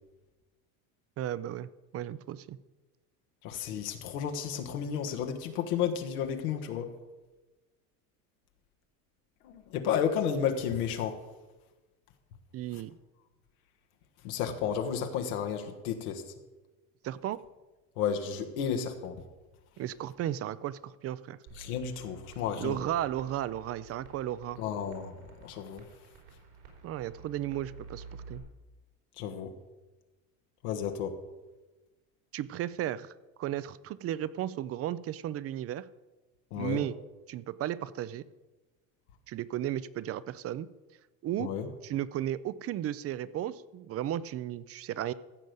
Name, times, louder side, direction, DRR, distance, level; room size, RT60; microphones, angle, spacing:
voice 1, 1.2-2.6 12.5-13.0 17.0-17.4 19.8-21.4 22.6-24.6 26.8-28.4 32.3-33.1 33.4-35.9 36.6-37.0 37.3-38.2 39.3-40.7 41.2-41.5 41.8-45.1, right 12 dB, 35° right, 18 dB, 0.4 m, -34 dB
voice 2, 3.4-6.9 9.4-11.2 14.2-16.2 18.0-19.2 21.6-22.8 24.6-25.1 25.4-25.8 29.2-29.5 30.6-31.1 36.5-36.8 41.4-41.7, left 8 dB, 85° left, 5 dB, 1.5 m, -32 dB
sound 1, 21.5-28.4, right 4 dB, 85° right, 4.5 m, -51 dB
15.0 x 5.2 x 7.9 m, 1.2 s
supercardioid pair, 115°, 43 cm